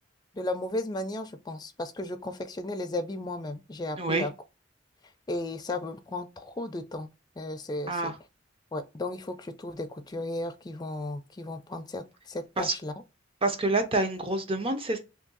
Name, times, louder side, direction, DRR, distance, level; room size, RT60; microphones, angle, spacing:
voice 1, 0.3-4.3 5.3-7.1 7.4-8.1 8.7-12.9, left 1 dB, 20° left, 0.4 m, -35 dB
voice 2, 4.0-4.3 7.9-8.1 12.6-12.7 13.4-15.0, right 2 dB, 30° right, 0.6 m, -27 dB
2.6 x 2.6 x 3.8 m
head